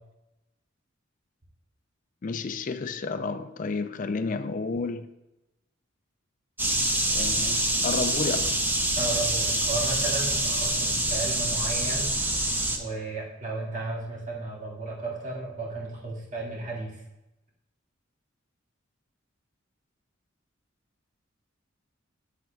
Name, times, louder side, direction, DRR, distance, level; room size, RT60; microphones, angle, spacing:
voice 1, 2.2-5.1 7.1-8.6, left 4 dB, 40° left, 0.4 m, -31 dB
sound 1, 6.6-12.8, right 1 dB, 10° right, 0.6 m, -26 dB
voice 2, 8.9-12.1 12.8-17.0, right 3 dB, 40° right, 1.9 m, -34 dB
8.2 x 7.7 x 2.3 m
head